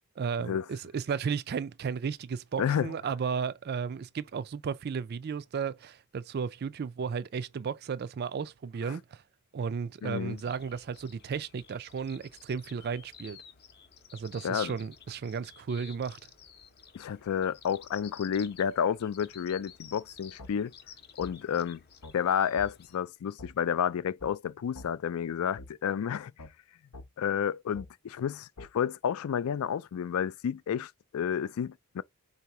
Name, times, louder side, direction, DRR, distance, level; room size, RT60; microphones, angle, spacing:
voice 1, 0.2-9.2 9.5-13.4 14.1-16.2, right 6 dB, 45° right, 0.3 m, -34 dB
voice 2, 2.6-2.9 8.8-9.0 10.0-10.4 14.4-14.7 16.9-20.7 21.2-21.8 22.1-26.3 27.2-32.0, left 8 dB, 70° left, 0.3 m, -30 dB
sound 1, 10.3-23.0, left 7 dB, 45° left, 0.7 m, -53 dB
sound 2, 20.4-20.5 21.2-21.3 22.0-22.2 22.6-22.7 23.4-23.5 24.2-24.3 24.7-24.9 25.6-25.7 26.4-26.5 26.9-27.1 27.7-27.9 28.6-28.7, left 2 dB, 90° left, 0.9 m, -45 dB
3.9 x 2.7 x 4.7 m
head